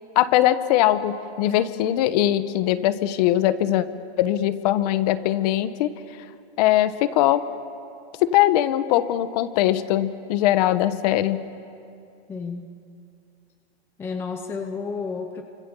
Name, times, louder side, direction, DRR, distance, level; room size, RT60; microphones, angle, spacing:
voice 1, 0.1-3.9 4.2-5.9 6.6-7.4 8.2-11.4, left 13 dB, 35° left, 12 dB, 1.2 m, -21 dB
voice 2, 12.3-12.7 14.0-15.4, left 5 dB, 5° left, 5 dB, 0.7 m, -31 dB
30.0 x 25.5 x 7.1 m, 2.5 s
hypercardioid pair, 160°, 33 cm